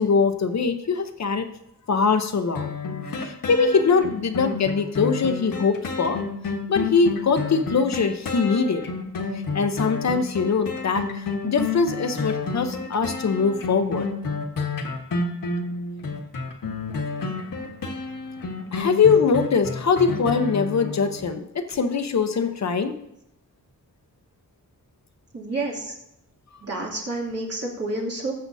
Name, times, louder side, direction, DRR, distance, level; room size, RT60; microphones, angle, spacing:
voice 1, 0.0-1.5 1.9-2.8 3.2-6.2 6.7-8.8 9.5-14.1 18.7-22.9, left 5 dB, 50° left, 8 dB, 0.9 m, -22 dB
sound 1, 2.5-21.2 21.7-21.8, left 4 dB, 70° left, 1.5 m, -30 dB
voice 2, 25.3-25.9 26.6-28.3, right 2 dB, 45° right, -3 dB, 2.9 m, -29 dB
19.0 x 7.8 x 2.7 m, 0.80 s
wide cardioid pair, 175°, 35 cm